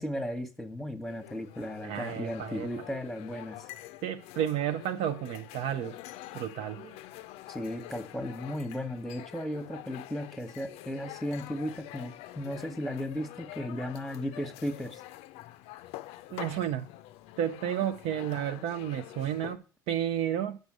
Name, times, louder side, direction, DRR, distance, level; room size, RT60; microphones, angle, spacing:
voice 1, 0.0-3.6 7.5-15.0, equal, ahead, 1.1 m, -35 dB
sound 1, 1.1-19.6, left 15 dB, 65° left, 0.4 m, -46 dB
voice 2, 1.8-2.7 4.0-6.0 6.3-7.0 16.3-16.9 17.4-20.6, right 10 dB, 60° right, 0.5 m, -32 dB
6.2 x 5.5 x 6.0 m
hypercardioid pair, 70°, 11 cm